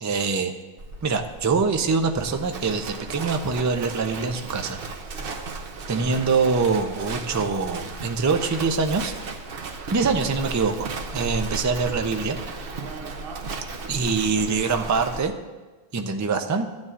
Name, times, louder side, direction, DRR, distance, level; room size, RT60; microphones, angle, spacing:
voice 1, 0.0-0.5 1.0-4.8 5.9-9.1 9.9-10.8 11.1-12.4 13.9-15.3 15.9-16.7, right 4 dB, 25° right, 6 dB, 0.4 m, -24 dB
Livestock farm animals working animals, 0.8-15.2, right 3 dB, 65° right, 0.9 m, -35 dB
15.0 x 9.5 x 2.5 m, 1.3 s
omnidirectional pair, 1.1 m